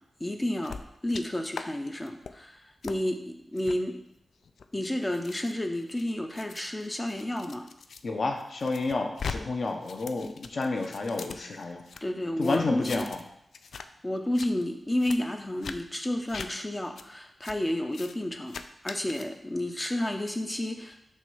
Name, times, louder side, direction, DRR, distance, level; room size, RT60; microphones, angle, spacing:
voice 1, 0.2-4.0 4.7-7.7 12.0-13.0 13.8-18.6 18.8-21.0, left 1 dB, 15° left, 5 dB, 0.5 m, -31 dB
sound 1, 0.6-1.2 1.5-1.7 2.0-2.3 2.8-3.0 3.6-3.8 4.4-8.0 8.4-9.4 9.6-12.0 12.4-13.3 13.5-13.9 14.2-14.5 15.0-15.2 15.6-15.8 16.3-16.5 17.0-17.1 17.4-17.6 17.9-18.1 18.5-19.3, left 5 dB, 90° left, 0.3 m, -41 dB
voice 2, 8.0-11.8 12.4-13.2, left 3 dB, 55° left, 2 dB, 0.8 m, -30 dB
6.2 x 3.3 x 5.5 m, 0.77 s
wide cardioid pair, 160°, 0 cm